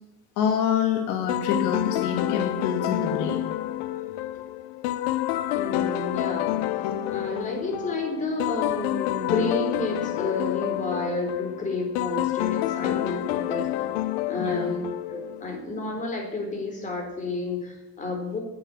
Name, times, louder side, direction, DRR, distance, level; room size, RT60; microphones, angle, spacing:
voice 1, 0.4-3.4 14.4-14.7, left 7 dB, 65° left, 4 dB, 1.9 m, -26 dB
sound 1, 1.3-15.5, left 14 dB, 85° left, 0.9 m, -28 dB
voice 2, 5.5-6.7 7.1-13.7 14.3-14.8 15.1-18.4, left 3 dB, 25° left, 2 dB, 4.1 m, -30 dB
10.5 x 9.3 x 8.9 m, 0.94 s
cardioid pair, 140°, 31 cm